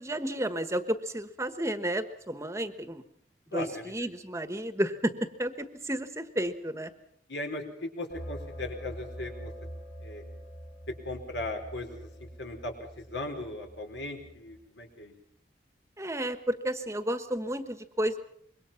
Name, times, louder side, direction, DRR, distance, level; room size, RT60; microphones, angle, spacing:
voice 1, 0.0-3.0 3.5-6.9 16.0-18.2, right 1 dB, 15° right, 10 dB, 1.3 m, -32 dB
voice 2, 3.5-3.9 7.3-9.5 10.0-10.2 11.0-12.1 12.4-15.1, left 2 dB, 75° left, 4 dB, 4.7 m, -38 dB
sound 1, 8.1-14.6, equal, 50° left, 2.8 m, -44 dB
26.0 x 22.5 x 5.9 m, 0.67 s
head